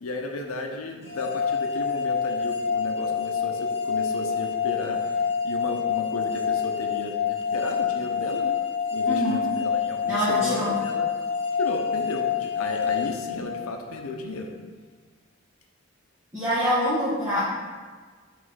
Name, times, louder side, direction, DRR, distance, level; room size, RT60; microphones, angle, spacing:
voice 1, 0.0-5.1 5.4-8.6 8.9-11.1 11.6-14.5, left 2 dB, 90° left, 3 dB, 0.7 m, -34 dB
sound 1, 1.1-14.0, left 7 dB, 30° left, 1.3 m, -27 dB
voice 2, 9.0-9.4 10.1-10.7 16.3-17.4, equal, 15° right, -12 dB, 1.3 m, -25 dB
5.0 x 3.4 x 5.6 m, 1.5 s
head